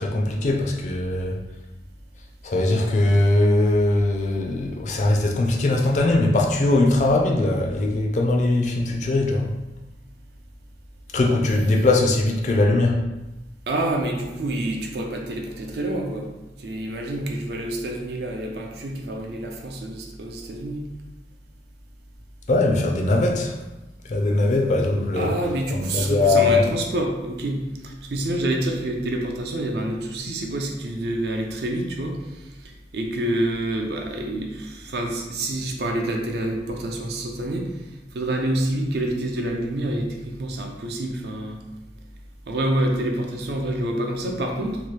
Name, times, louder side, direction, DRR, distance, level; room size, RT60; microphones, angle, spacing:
voice 1, 0.0-1.4 2.4-9.5 11.1-13.0 22.5-23.6 24.0-25.4 25.7-26.7, left 2 dB, 40° left, 1 dB, 0.4 m, -20 dB
voice 2, 13.7-16.3 16.6-20.8 25.2-32.4 32.9-37.6 38.1-41.6 42.5-44.8, right 1 dB, 65° right, 2 dB, 0.4 m, -27 dB
2.9 x 2.2 x 3.1 m, 1.0 s
head